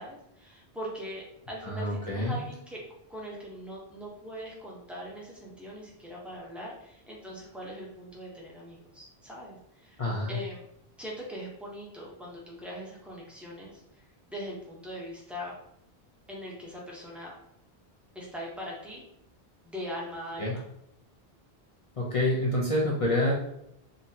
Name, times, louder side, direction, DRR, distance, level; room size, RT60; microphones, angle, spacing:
voice 1, 0.0-2.8 3.1-10.0 10.3-10.7 11.0-15.6 16.3-17.3 18.1-19.1 19.6-20.6, equal, ahead, -4 dB, 0.9 m, -41 dB
voice 2, 1.6-2.4 10.0-10.4 20.4-20.6 22.0-23.3, left 1 dB, 40° left, -5 dB, 0.7 m, -27 dB
3.8 x 2.8 x 2.8 m, 0.77 s
omnidirectional pair, 1.0 m